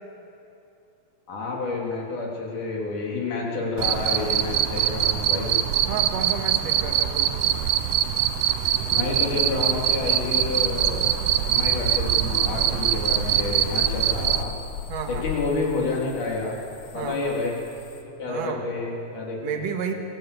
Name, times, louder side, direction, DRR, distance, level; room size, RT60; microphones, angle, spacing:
voice 1, 1.3-5.5 8.9-14.5 15.1-16.6 16.9-17.5 18.0-19.7, left 3 dB, 55° left, -2 dB, 4.4 m, -29 dB
Cricket, 3.8-14.4, right 11 dB, 85° right, 1.8 m, -23 dB
voice 2, 5.9-7.3 14.9-15.2 16.9-17.4 18.3-18.6 19.4-19.9, right 7 dB, 50° right, 3 dB, 2.4 m, -31 dB
sound 1, 7.4-18.0, left 7 dB, 85° left, 3.6 m, -38 dB
23.0 x 15.0 x 8.3 m, 2.8 s
omnidirectional pair, 4.6 m